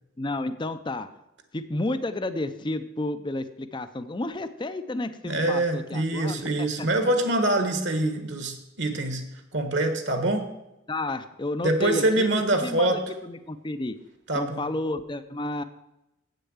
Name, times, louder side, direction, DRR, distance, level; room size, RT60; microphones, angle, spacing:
voice 1, 0.2-1.1 1.5-6.9 10.9-12.9 13.2-14.0 14.3-15.6, left 2 dB, 25° left, 12 dB, 0.5 m, -31 dB
voice 2, 5.2-9.3 9.5-10.5 11.6-13.0 14.3-14.6, right 2 dB, 60° right, 7 dB, 1.3 m, -25 dB
8.2 x 6.7 x 8.0 m, 0.90 s
head